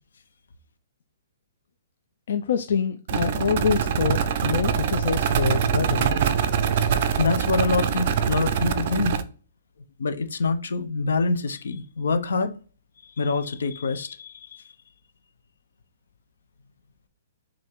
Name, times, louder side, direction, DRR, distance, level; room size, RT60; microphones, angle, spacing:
voice 1, 2.3-6.1, left 6 dB, 55° left, 0.3 m, -25 dB
sound 1, 3.1-9.2, right 7 dB, 35° right, 0.4 m, -24 dB
voice 2, 7.2-9.1 10.0-12.5 13.2-14.6, left 4 dB, 80° left, 0.7 m, -25 dB
5.6 x 2.6 x 3.5 m
hypercardioid pair, 180°, 0 cm